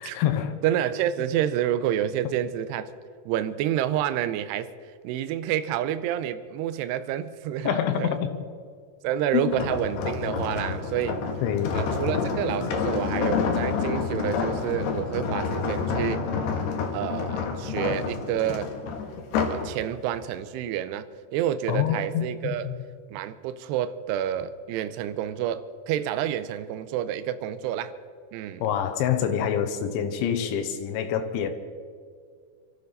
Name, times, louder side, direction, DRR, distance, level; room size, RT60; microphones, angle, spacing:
voice 1, 0.0-0.6 7.7-8.5 9.3-9.6 11.4-11.8 21.7-22.7 28.6-31.5, left 9 dB, 85° left, 3.4 m, -26 dB
voice 2, 0.6-2.9 3.3-4.7 5.0-8.1 9.0-11.2 11.7-16.3 16.9-18.7 19.5-22.7 23.1-27.9 28.3-28.6, right 11 dB, 80° right, 2.6 m, -29 dB
sound 1, 9.5-19.7 20.1-20.4, left 5 dB, 70° left, 3.3 m, -28 dB
26.0 x 13.0 x 4.1 m
omnidirectional pair, 5.2 m